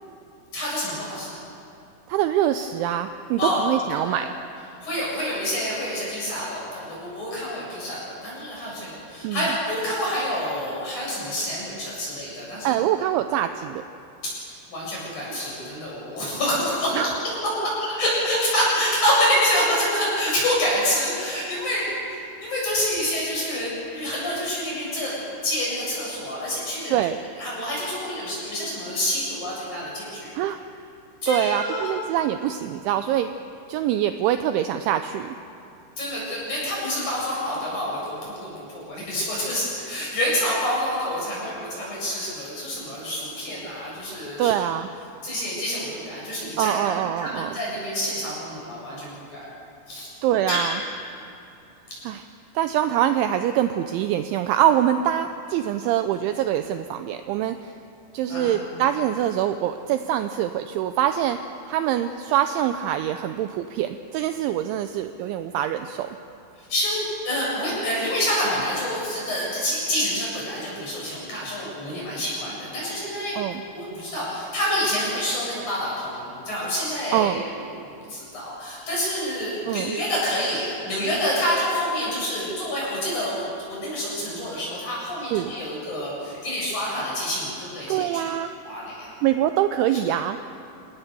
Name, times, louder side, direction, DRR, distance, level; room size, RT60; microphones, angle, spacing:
voice 1, 0.5-1.4 3.4-3.6 3.9-4.2 4.8-12.7 14.2-17.1 17.6-27.0 27.4-30.3 31.2-31.9 36.0-44.5 45.2-49.5 49.9-50.1 50.5-50.6 58.3-58.5 66.7-73.4 73.7-77.4 78.1-88.3 88.6-89.1, equal, 35° left, -5 dB, 9.3 m, -27 dB
voice 2, 2.1-4.3 9.2-9.5 12.6-13.8 16.9-17.1 26.9-27.2 30.3-30.6 31.2-33.3 33.7-35.4 44.4-44.9 46.6-47.6 50.2-50.8 52.0-52.2 52.6-57.7 58.1-61.4 61.7-66.1 73.4-73.6 77.1-77.4 79.7-80.0 85.3-85.5 87.9-88.5 89.2-90.4, right 11 dB, 80° right, 8 dB, 2.8 m, -24 dB
28.0 x 19.5 x 6.9 m, 2.7 s
omnidirectional pair, 5.9 m